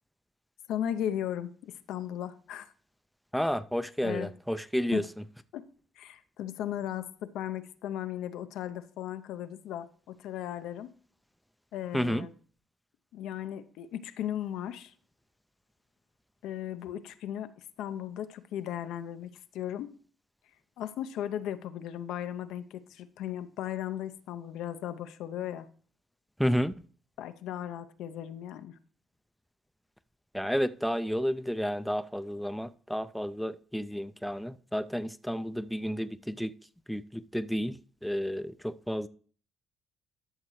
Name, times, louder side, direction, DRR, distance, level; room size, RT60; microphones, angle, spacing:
voice 1, 0.7-2.7 4.0-4.3 4.9-5.1 5.5-5.7 6.0-10.9 11.7-12.3 13.1-14.9 16.4-19.9 20.8-25.7 27.2-28.8, left 11 dB, 80° left, 0.6 m, -36 dB
voice 2, 3.3-5.1 11.9-12.3 26.4-26.7 30.3-36.5 36.9-39.1, equal, ahead, 0.4 m, -31 dB
12.5 x 6.5 x 3.1 m
cardioid pair, 100°, 0 cm